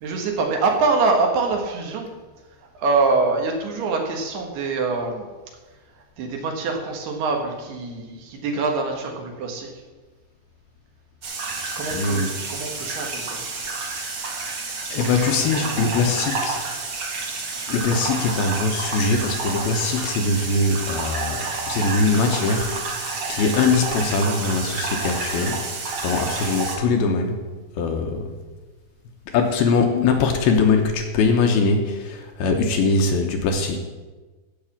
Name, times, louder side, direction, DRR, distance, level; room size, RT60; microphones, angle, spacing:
voice 1, 0.0-2.1 2.6-5.3 5.9-9.7 11.8-13.4 14.1-14.5, right 3 dB, 70° right, 2 dB, 3.4 m, -24 dB
sound 1, 11.2-26.8, right 3 dB, 50° right, 1.6 m, -29 dB
voice 2, 11.9-12.3 14.9-16.6 17.7-25.6 26.0-27.4 27.8-28.3 29.3-33.9, left 4 dB, 70° left, 3 dB, 2.6 m, -22 dB
15.5 x 5.4 x 7.3 m, 1.3 s
omnidirectional pair, 4.9 m